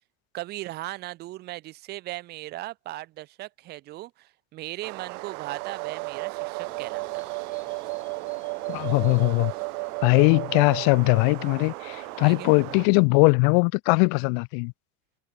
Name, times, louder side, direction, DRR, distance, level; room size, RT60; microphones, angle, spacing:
voice 1, 0.3-7.2 12.2-12.5, right 17 dB, 25° right, 0.5 m, -38 dB
sound 1, 4.8-12.9, right 26 dB, 85° right, 1.1 m, -38 dB
sound 2, 5.5-10.9, right 35 dB, 50° right, 1.4 m, -34 dB
sound 3, 6.6-12.6, left 8 dB, 20° left, 2.6 m, -55 dB
voice 2, 8.7-9.5 10.0-14.7, left 40 dB or more, 50° left, 0.6 m, -20 dB
cardioid pair, 180°, 43 cm